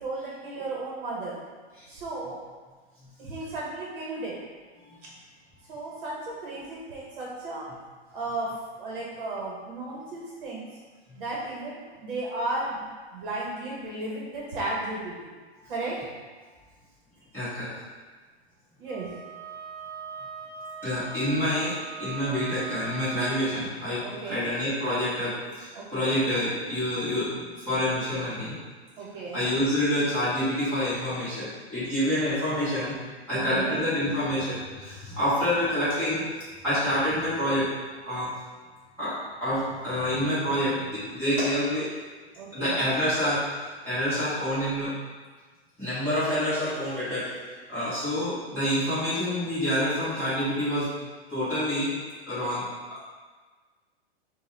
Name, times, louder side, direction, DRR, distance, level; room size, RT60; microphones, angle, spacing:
voice 1, 0.0-1.4 1.9-2.4 3.2-4.4 5.7-7.7 8.1-10.7 11.2-12.9 13.1-15.3 15.7-16.0 18.8-19.1 24.0-24.5 25.7-26.2 29.0-29.5 33.3-33.8 42.3-42.9, right 2 dB, 50° right, -4 dB, 1.1 m, -34 dB
voice 2, 17.3-17.7 20.8-28.5 29.3-32.9 33.3-37.7 38.1-38.3 39.0-41.9 42.5-43.4 43.8-44.9 45.8-50.9 51.3-51.9 52.3-52.6 52.9-53.0, equal, 5° left, -17 dB, 1.5 m, -27 dB
Wind instrument woodwind instrument, 18.9-23.6, right 7 dB, 15° right, 0.5 m, -40 dB
6.3 x 2.4 x 3.4 m, 1.4 s
hypercardioid pair, 165°, 34 cm